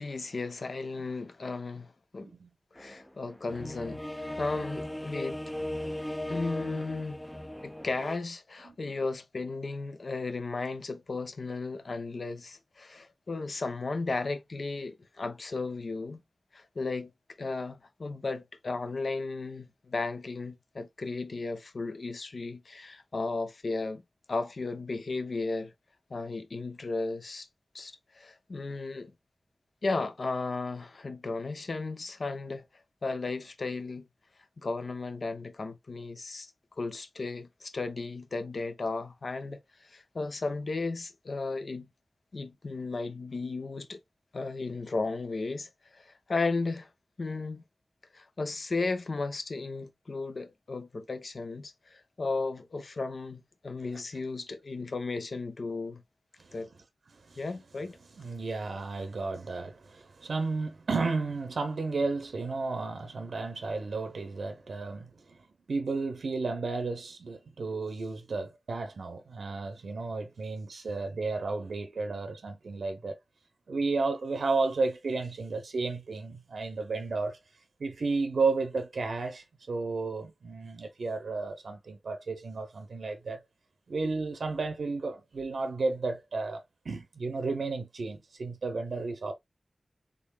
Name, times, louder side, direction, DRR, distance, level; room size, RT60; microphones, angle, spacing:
voice 1, 0.0-2.3 2.7-5.4 6.3-7.2 7.6-16.2 16.5-17.1 17.4-24.0 24.3-25.7 26.1-27.5 27.7-29.1 29.8-32.6 33.0-34.1 34.6-36.5 36.8-41.9 42.3-44.0 44.3-46.9 47.2-47.6 48.1-56.0 56.5-56.7 57.4-58.0, left 3 dB, 65° left, 0.6 m, -35 dB
voice 2, 2.2-2.5 8.6-8.7 53.9-54.0 56.4-56.5 57.1-57.4 58.2-65.4 65.7-73.2 73.7-77.4 77.8-83.4 83.9-89.3, right 3 dB, 85° right, 0.6 m, -33 dB
sound 1, 2.7-8.2, left 1 dB, 10° left, 0.4 m, -38 dB
3.7 x 3.6 x 2.3 m
wide cardioid pair, 60°, 0 cm